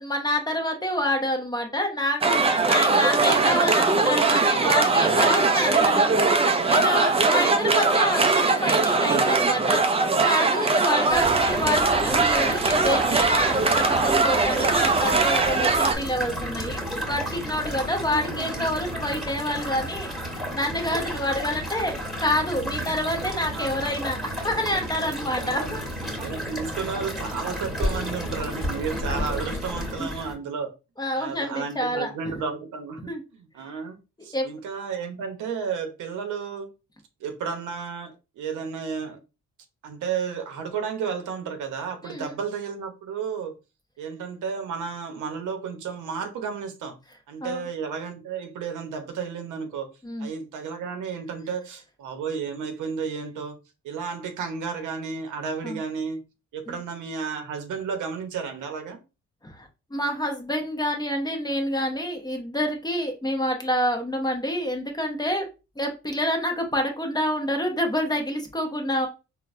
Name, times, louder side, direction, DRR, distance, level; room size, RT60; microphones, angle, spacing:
voice 1, 0.0-6.2 6.7-10.0 10.2-20.1 20.5-25.8 27.8-28.1 30.0-30.1 31.0-32.4 33.1-33.2 34.3-34.5 42.0-42.4 47.4-47.6 50.0-50.3 55.6-55.8 56.7-56.8 59.4-65.5 65.8-69.1, left 1 dB, 15° left, 0.8 m, -27 dB
sound 1, 2.2-15.9, right 3 dB, 20° right, 0.4 m, -21 dB
voice 2, 3.0-3.5 6.6-8.0 10.9-11.5 18.0-18.8 22.6-22.9 23.2-23.9 25.4-25.8 26.2-30.7 31.1-34.0 34.2-36.7 37.2-39.2 39.8-43.5 44.0-47.0 47.3-49.9 50.2-53.6 53.8-56.2 56.5-59.0, right 6 dB, 80° right, 0.8 m, -33 dB
sound 2, 11.1-30.3, equal, ahead, 1.5 m, -32 dB
3.9 x 2.2 x 2.5 m
cardioid pair, 90°, 30 cm